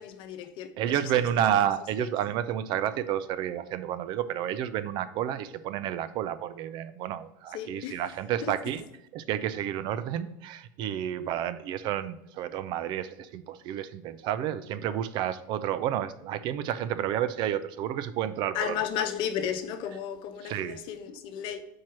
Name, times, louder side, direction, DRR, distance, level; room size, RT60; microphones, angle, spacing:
voice 1, 0.0-1.5 2.0-2.1 7.5-8.0 8.4-8.5 11.1-11.3 18.5-21.6, left 9 dB, 50° left, 0.9 m, -34 dB
voice 2, 0.8-8.8 9.1-18.8 20.4-20.8, right 10 dB, 50° right, 0.5 m, -30 dB
4.6 x 4.6 x 5.8 m
supercardioid pair, 120°, 10 cm